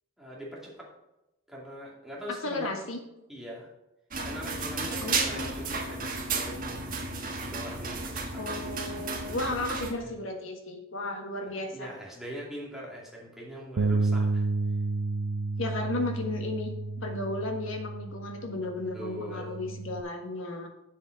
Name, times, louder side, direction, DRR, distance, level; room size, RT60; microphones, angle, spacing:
voice 1, 0.2-0.9 1.5-2.8 3.3-3.7 4.2-6.8 7.4-8.4 10.0-10.1 11.4-14.5 18.9-19.6, equal, ahead, -4 dB, 2.4 m, -42 dB
voice 2, 2.4-3.0 5.0-5.7 8.4-11.9 15.6-16.7 17.0-20.7, left 2 dB, 80° left, 3 dB, 1.6 m, -34 dB
sound 1, 4.1-9.9, right 3 dB, 45° right, 1.5 m, -33 dB
Bass guitar, 13.8-20.0, right 3 dB, 65° right, 0.4 m, -31 dB
7.4 x 7.2 x 5.2 m, 0.94 s
head